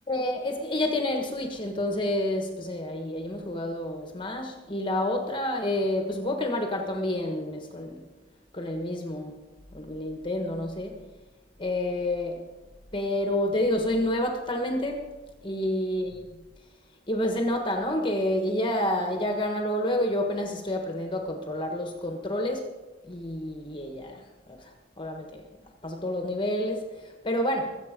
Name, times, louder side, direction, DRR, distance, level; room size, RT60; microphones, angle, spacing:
voice 1, 0.1-8.0 8.5-9.4 9.7-11.0 11.6-12.4 12.9-15.1 15.4-16.4 17.1-22.7 23.0-25.4 25.8-27.8, left 1 dB, 25° left, 3 dB, 1.3 m, -29 dB
22.0 x 8.2 x 5.1 m, 1.2 s
head